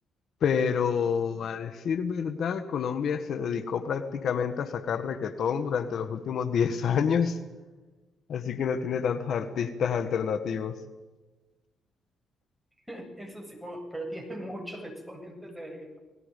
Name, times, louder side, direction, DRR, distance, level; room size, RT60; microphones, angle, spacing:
voice 1, 0.4-7.4 8.3-10.7, left 7 dB, 65° left, 10 dB, 1.5 m, -28 dB
voice 2, 12.9-16.0, right 1 dB, 5° right, 2 dB, 7.7 m, -39 dB
29.5 x 19.5 x 5.3 m, 1.2 s
cardioid pair, 90°, 0 cm